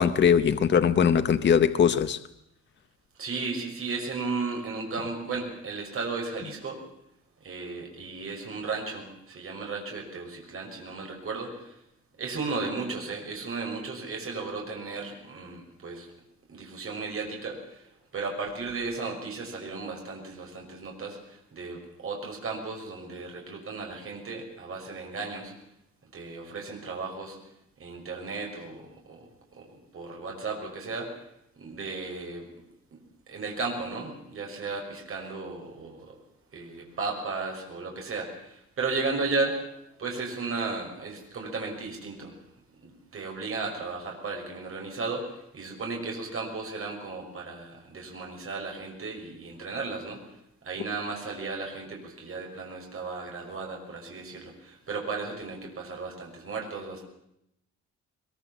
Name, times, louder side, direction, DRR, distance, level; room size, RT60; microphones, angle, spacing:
voice 1, 0.0-2.2, left 7 dB, 35° left, 10 dB, 0.8 m, -21 dB
voice 2, 3.2-6.8 7.4-11.8 12.2-16.1 16.5-17.9 18.1-25.5 26.1-27.4 27.8-31.2 31.6-32.5 32.9-33.0 33.3-36.1 36.5-42.4 42.8-50.3 50.6-57.0, right 3 dB, 45° right, 1 dB, 6.1 m, -35 dB
22.0 x 22.0 x 7.4 m, 0.79 s
wide cardioid pair, 170°, 30 cm